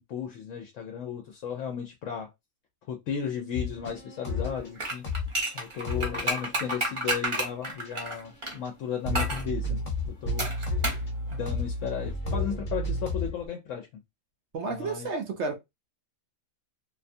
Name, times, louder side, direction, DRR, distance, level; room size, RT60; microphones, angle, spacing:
voice 1, 0.0-2.3 2.9-5.1 5.5-9.9 10.2-10.5 11.3-13.9 14.7-15.1, left 8 dB, 70° left, 0.9 m, -35 dB
sound 1, 3.5-4.7 5.0-5.5 5.8-8.3 8.6-8.7 9.0-13.5, left 2 dB, 40° left, 1.0 m, -32 dB
sound 2, 4.8-8.6 9.1-9.4 10.4-11.1 11.3-11.4, right 1 dB, 30° right, 0.7 m, -30 dB
voice 2, 14.5-15.6, right 3 dB, 65° right, 0.8 m, -31 dB
2.5 x 2.3 x 2.6 m
omnidirectional pair, 1.4 m